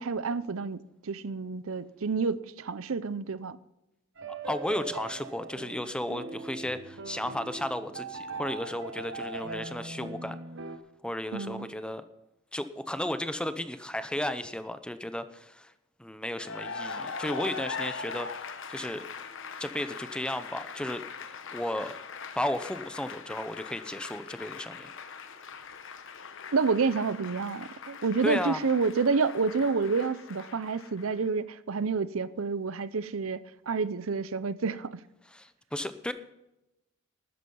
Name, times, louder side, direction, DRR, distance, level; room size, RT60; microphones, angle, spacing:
voice 1, 0.0-3.6 11.3-11.7 26.5-35.0, right 4 dB, 80° right, 0.6 m, -29 dB
sound 1, 4.2-10.8, right 4 dB, 60° right, 1.1 m, -40 dB
voice 2, 4.4-10.4 11.0-12.0 12.5-15.7 16.0-19.0 19.6-21.0 21.5-22.0 22.4-24.9 28.2-28.6 35.3-36.1, left 1 dB, 5° left, 0.7 m, -34 dB
Cheering / Applause, 16.3-31.3, left 5 dB, 65° left, 1.1 m, -41 dB
13.0 x 10.0 x 5.5 m
head